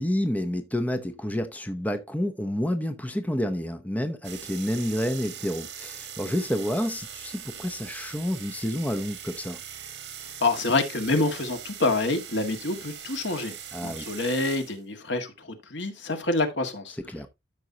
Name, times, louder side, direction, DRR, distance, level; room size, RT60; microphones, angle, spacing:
voice 1, 0.0-9.6 13.7-14.0 17.1-17.3, equal, 10° left, 0.8 m, -29 dB
sound 1, 4.2-14.8, right 9 dB, 65° right, 1.7 m, -41 dB
voice 2, 10.4-13.6 13.8-17.0, left 2 dB, 80° left, 1.9 m, -27 dB
12.5 x 5.3 x 2.8 m
head